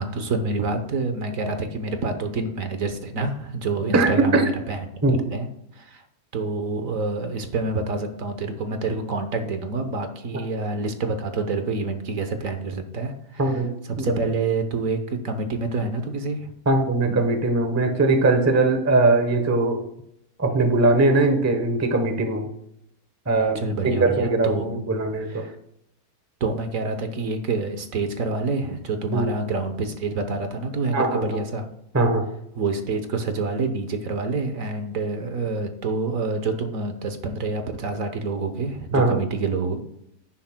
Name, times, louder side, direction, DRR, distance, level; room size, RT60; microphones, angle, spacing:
voice 1, 0.0-4.8 5.3-5.5 5.7-6.0 6.3-13.5 14.0-16.5 23.5-24.8 25.3-25.6 26.4-31.6 32.6-39.8, right 3 dB, 60° right, 7 dB, 1.3 m, -27 dB
voice 2, 3.9-4.4 5.0-5.2 13.4-13.7 14.0-14.1 16.7-19.9 20.4-22.5 23.3-23.6 24.0-25.5 29.1-29.3 30.9-31.4 31.9-32.3 38.9-39.2, right 2 dB, 15° right, 7 dB, 0.7 m, -20 dB
10.0 x 10.0 x 2.2 m, 0.76 s
omnidirectional pair, 1.7 m